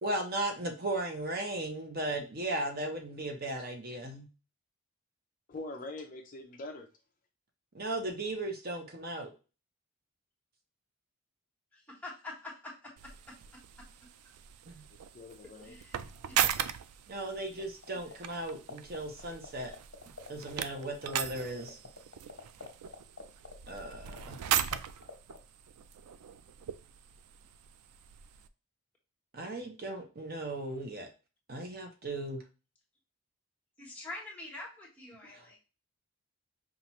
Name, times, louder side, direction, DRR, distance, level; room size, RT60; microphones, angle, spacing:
voice 1, 0.0-4.3 7.7-9.3 14.7-14.8 17.1-19.7 20.3-21.8 23.7-24.4 29.3-31.1 31.5-32.4 35.3-35.6, right 1 dB, 40° right, 4 dB, 0.7 m, -36 dB
voice 2, 5.5-6.9 15.1-15.8, left 2 dB, 35° left, 4 dB, 0.4 m, -43 dB
voice 3, 11.7-12.7 15.6-16.0 16.4-16.5 33.8-35.6, left 2 dB, 5° left, -4 dB, 1.2 m, -45 dB
sound 1, 13.0-28.5, right 10 dB, 90° right, 0.3 m, -38 dB
sound 2, 17.6-18.1 18.4-20.5 20.8-20.9 21.0-24.8 25.0-25.4, left 4 dB, 55° left, 1.0 m, -44 dB
5.4 x 2.4 x 2.9 m, 0.33 s
head